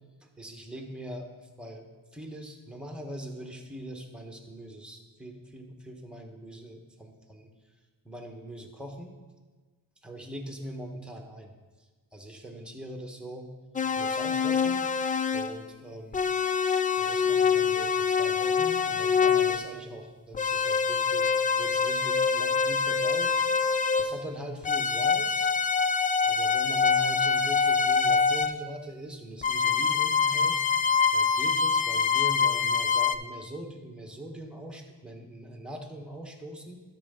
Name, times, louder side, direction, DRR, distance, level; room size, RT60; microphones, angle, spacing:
voice 1, 0.2-1.3 1.6-1.9 2.1-7.5 8.0-9.1 10.0-11.5 12.1-13.5 14.0-14.9 15.3-16.2 17.0-21.3 21.6-23.4 24.0-25.5 26.3-30.6 31.1-36.8, right 1 dB, ahead, 3 dB, 1.3 m, -41 dB
sound 1, 13.8-15.6 16.1-19.7 20.3-24.3 24.6-28.6 29.4-33.2, left 6 dB, 20° left, 0.3 m, -25 dB
12.5 x 5.4 x 3.8 m, 1.4 s
cardioid pair, 75°, 44 cm